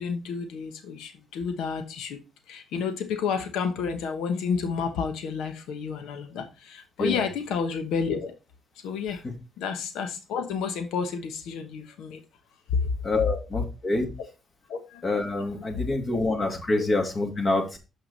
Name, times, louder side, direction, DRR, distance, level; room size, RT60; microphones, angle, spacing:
voice 1, 0.0-2.2 2.5-8.3 8.8-9.2 9.6-12.2 12.7-12.9 14.7-15.0 15.6-15.8 16.8-16.9, left 6 dB, 85° left, 1.1 m, -30 dB
voice 2, 13.0-14.1 15.0-17.8, left 2 dB, 40° left, 2.3 m, -26 dB
7.1 x 5.9 x 4.2 m
cardioid pair, 90°, 0 cm